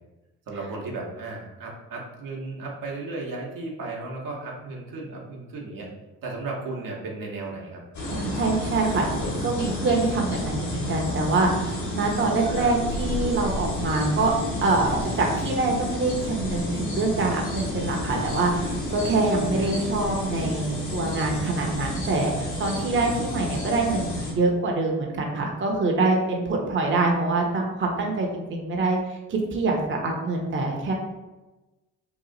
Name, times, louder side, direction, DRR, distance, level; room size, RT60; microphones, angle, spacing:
voice 1, 0.5-5.9 6.2-7.8 12.4-12.7 19.5-19.8, right 3 dB, 75° right, -2 dB, 0.9 m, -35 dB
sound 1, 7.9-24.3, left 1 dB, 60° left, 1.4 m, -30 dB
voice 2, 8.1-9.1 9.4-14.3 14.6-30.9, right 3 dB, 35° right, 0 dB, 0.8 m, -25 dB
3.0 x 2.4 x 3.8 m, 1.1 s
supercardioid pair, 65°, 34 cm